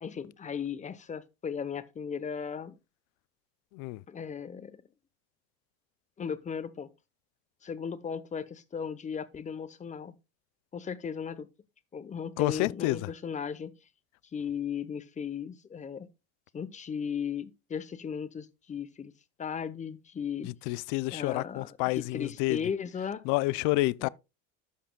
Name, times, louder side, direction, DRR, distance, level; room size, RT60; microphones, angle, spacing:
voice 1, 0.0-2.8 4.1-4.8 6.2-6.9 7.6-10.1 10.7-11.5 11.9-13.7 14.3-16.1 16.5-19.1 19.4-20.5 21.1-21.7 21.9-23.2 24.0-24.1, left 7 dB, 25° left, 0.8 m, -36 dB
voice 2, 12.4-13.0 20.7-22.6 23.3-24.1, left 20 dB, 70° left, 0.5 m, -28 dB
14.0 x 5.7 x 2.2 m
cardioid pair, 120°, 32 cm